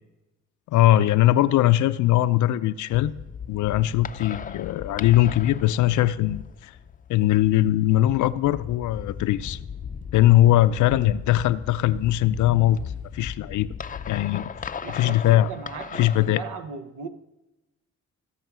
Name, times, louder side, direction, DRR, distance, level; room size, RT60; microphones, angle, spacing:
voice 1, 0.7-3.1 3.5-6.7 7.1-9.6 10.1-12.8 13.1-13.7 14.1-14.5 14.9-15.5 16.0-16.4, left 14 dB, 75° left, 0.5 m, -20 dB
sound 1, 2.9-16.3, left 7 dB, 30° left, 0.5 m, -38 dB
voice 2, 14.8-17.1, right 5 dB, 85° right, 1.0 m, -38 dB
16.0 x 6.4 x 6.1 m
cardioid pair, 90°, 30 cm